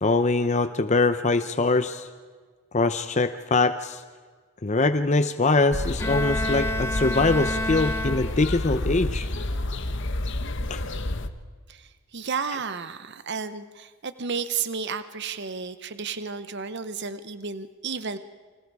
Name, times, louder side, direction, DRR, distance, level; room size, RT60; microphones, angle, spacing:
voice 1, 0.0-2.1 2.7-4.0 4.6-9.3 10.7-10.8, left 3 dB, 30° left, 10 dB, 0.7 m, -23 dB
sound 1, 5.7-11.3, left 1 dB, 55° left, 1.2 m, -29 dB
Bowed string instrument, 6.0-8.7, left 1 dB, 10° left, 1.0 m, -30 dB
voice 2, 11.7-18.2, right 5 dB, 50° right, 12 dB, 0.8 m, -32 dB
29.5 x 25.5 x 4.8 m, 1.5 s
head